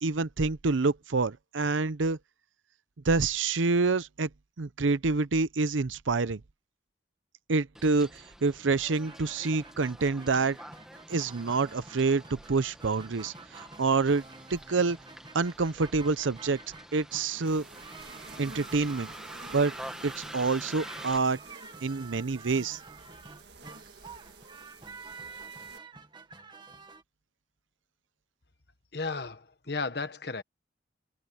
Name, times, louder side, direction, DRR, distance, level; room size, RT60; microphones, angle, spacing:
voice 1, 0.0-2.2 3.0-4.3 4.6-6.4 7.5-10.6 11.1-14.2 14.5-15.0 15.3-16.6 16.9-17.6 18.4-19.1 19.5-19.7 20.0-21.4 21.8-22.8, right 4 dB, 85° right, 0.7 m, -27 dB
Bus, 7.7-21.2, equal, 5° right, 1.8 m, -47 dB
sound 1, 9.0-27.0, right 4 dB, 25° right, 1.7 m, -49 dB
sound 2, 17.5-25.8, right 4 dB, 60° right, 1.9 m, -51 dB
voice 2, 28.9-30.4, left 4 dB, 55° left, 1.3 m, -34 dB
head